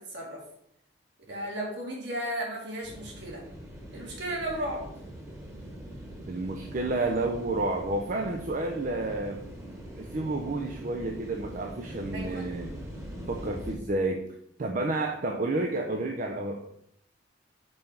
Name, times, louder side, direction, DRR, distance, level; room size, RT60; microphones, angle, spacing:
voice 1, 0.1-0.4 1.3-3.4 3.9-4.8 12.1-12.4, right 1 dB, 60° right, -2 dB, 2.2 m, -34 dB
sound 1, 2.8-13.7, equal, 15° right, 1.3 m, -42 dB
voice 2, 6.3-9.4 10.0-12.7 13.3-14.2 14.6-16.7, right 2 dB, 40° right, 2 dB, 0.5 m, -30 dB
5.5 x 4.5 x 5.5 m, 0.74 s
head